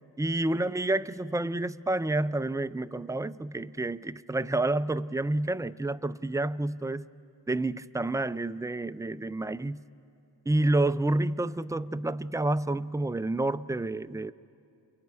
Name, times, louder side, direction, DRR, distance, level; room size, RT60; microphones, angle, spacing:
voice 1, 0.2-7.1 7.5-9.8 10.5-14.3, right 2 dB, 10° right, 0.4 m, -29 dB
29.5 x 23.0 x 4.7 m
cardioid pair, 40°, 45 cm